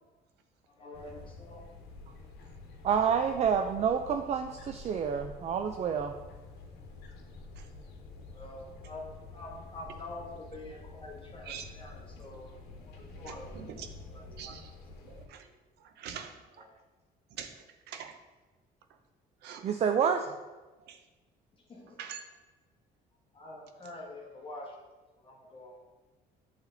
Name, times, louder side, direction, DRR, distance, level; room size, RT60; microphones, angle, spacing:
voice 1, 0.7-1.6 8.3-13.7 14.1-14.6 15.5-15.6 16.6-16.8 21.5-22.0 23.3-25.8, left 1 dB, 30° left, -1 dB, 1.2 m, -47 dB
sound 1, 0.9-15.3, left 3 dB, 75° left, 1.1 m, -49 dB
voice 2, 2.8-6.1 19.6-20.3, right 7 dB, 40° right, 6 dB, 0.4 m, -28 dB
voice 3, 13.1-14.7 15.0-15.5 15.8-16.5 17.3-18.2 19.4-19.7 20.8-21.0 22.0-22.3, right 7 dB, 80° right, 7 dB, 0.7 m, -45 dB
8.1 x 3.4 x 3.9 m, 1.2 s
cardioid pair, 110°, 17 cm